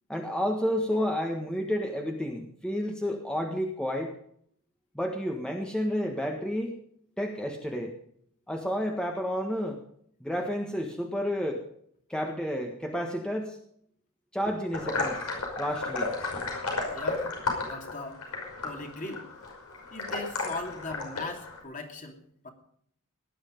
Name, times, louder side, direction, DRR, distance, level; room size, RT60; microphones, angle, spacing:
voice 1, 0.1-4.1 4.9-6.7 7.2-7.9 8.5-9.8 10.2-11.6 12.1-13.6 14.3-15.3 15.6-16.3, equal, 5° left, 2 dB, 1.4 m, -30 dB
sound 1, 14.7-21.6, left 3 dB, 80° left, 5.5 m, -33 dB
voice 2, 16.8-17.3 17.6-18.2 18.6-19.3 19.9-22.5, left 3 dB, 35° left, 3 dB, 2.8 m, -39 dB
18.0 x 11.0 x 5.3 m, 0.67 s
head